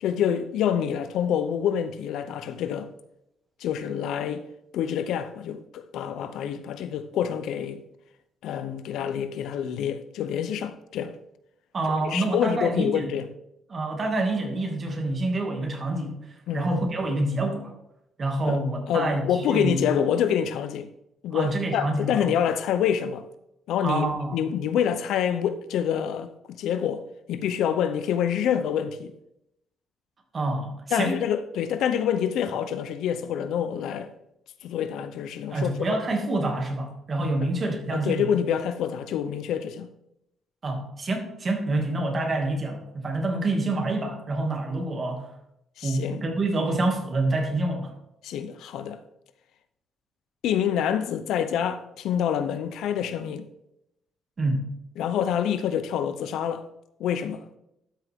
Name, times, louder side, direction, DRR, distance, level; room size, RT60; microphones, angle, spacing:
voice 1, 0.0-2.9 3.6-4.4 4.7-7.8 8.4-11.1 11.9-13.3 16.5-16.7 18.5-18.6 18.9-20.9 21.2-23.2 23.7-27.0 27.3-29.1 30.9-34.1 34.6-35.7 37.4-37.5 37.9-39.9 45.8-46.2 48.2-49.0 50.4-53.5 55.0-56.6 57.0-57.4, left 9 dB, 85° left, 0.7 m, -27 dB
voice 2, 11.7-13.1 13.7-16.2 16.5-17.7 18.2-19.9 21.3-22.3 23.8-24.4 30.3-31.1 35.5-38.2 40.6-45.3 45.8-47.9 54.4-54.6, right 2 dB, 35° right, 2.4 m, -27 dB
12.5 x 6.0 x 3.7 m
cardioid pair, 105°, 0 cm